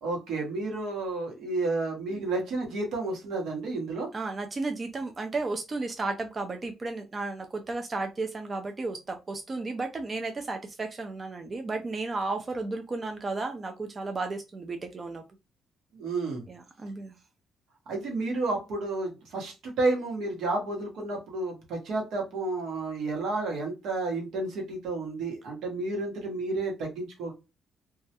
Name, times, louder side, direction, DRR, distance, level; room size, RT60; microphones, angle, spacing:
voice 1, 0.0-4.1 15.9-16.4 17.9-27.3, right 2 dB, 80° right, 1 dB, 0.9 m, -31 dB
voice 2, 4.1-15.2 16.5-17.1, right 3 dB, 35° right, 5 dB, 0.4 m, -33 dB
2.2 x 2.0 x 2.8 m, 0.27 s
cardioid pair, 90°, 0 cm